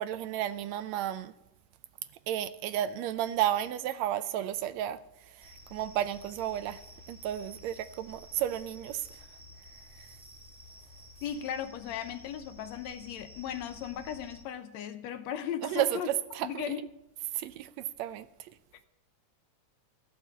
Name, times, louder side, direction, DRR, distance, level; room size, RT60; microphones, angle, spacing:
voice 1, 0.0-1.3 2.3-5.0 5.3-6.8 7.1-9.1 15.6-16.7 17.3-17.7 18.0-18.5, right 11 dB, 75° right, 1.8 m, -32 dB
sound 1, 5.4-14.4, left 1 dB, 5° right, 1.4 m, -52 dB
voice 2, 11.2-16.1 16.4-16.8, left 9 dB, 75° left, 2.0 m, -37 dB
15.0 x 7.5 x 8.3 m
omnidirectional pair, 3.3 m